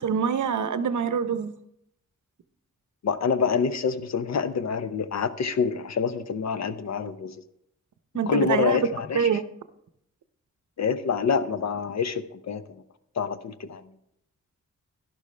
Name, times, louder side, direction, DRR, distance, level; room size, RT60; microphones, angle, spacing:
voice 1, 0.0-1.5 8.1-8.8 9.1-9.4, right 7 dB, 70° right, 0.8 m, -25 dB
voice 2, 3.0-7.4 8.3-9.3 10.8-12.8 13.2-13.8, left 6 dB, 60° left, 0.7 m, -27 dB
11.5 x 11.5 x 3.3 m
cardioid pair, 70°, 31 cm